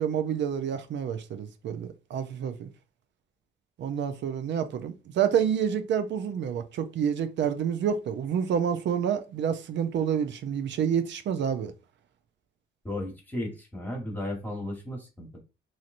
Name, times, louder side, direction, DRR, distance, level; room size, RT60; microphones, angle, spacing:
voice 1, 0.0-2.7 3.8-11.7, right 8 dB, 65° right, 0.5 m, -28 dB
voice 2, 12.8-15.3, left 1 dB, 10° left, 1.3 m, -34 dB
3.1 x 2.8 x 2.5 m
cardioid pair, 90°, 20 cm